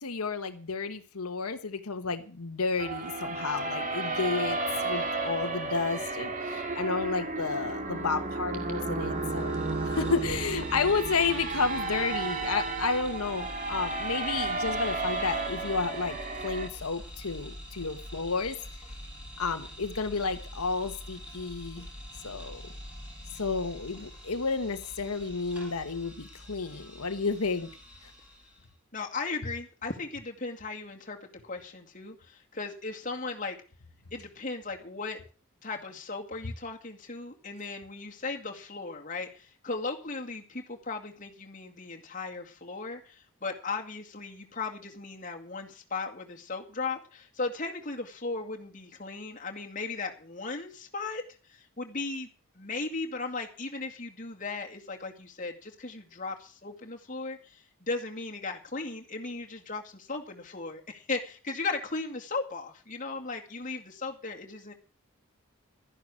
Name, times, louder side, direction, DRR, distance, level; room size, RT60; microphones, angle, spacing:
voice 1, 0.0-4.6 4.8-9.6 9.8-16.2 16.4-18.6 19.4-21.9 22.2-22.6 23.3-27.7, left 4 dB, 80° left, 7 dB, 1.2 m, -31 dB
sound 1, 2.8-16.7, right 3 dB, 35° right, 2.2 m, -33 dB
sound 2, 9.0-28.7, equal, 5° right, 5.9 m, -45 dB
voice 2, 28.9-31.2 31.4-33.6 34.1-35.2 35.6-51.2 51.5-52.3 52.6-64.7, left 3 dB, 35° left, 2 dB, 2.1 m, -37 dB
12.5 x 11.0 x 6.2 m, 0.37 s
head